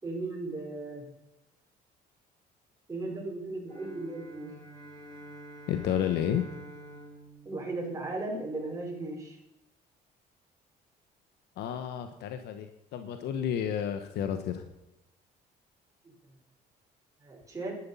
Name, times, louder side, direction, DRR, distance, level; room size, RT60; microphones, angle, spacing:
voice 1, 0.0-1.0 2.9-4.5 7.4-9.4 16.0-16.1 17.2-17.8, right 2 dB, 20° right, -2 dB, 5.0 m, -36 dB
sound 1, 3.6-8.3, right 1 dB, 20° left, 6.1 m, -48 dB
voice 2, 5.7-6.4 11.6-14.7, left 9 dB, 80° left, 8 dB, 1.2 m, -31 dB
11.5 x 11.0 x 5.6 m, 0.89 s
cardioid pair, 110°, 17 cm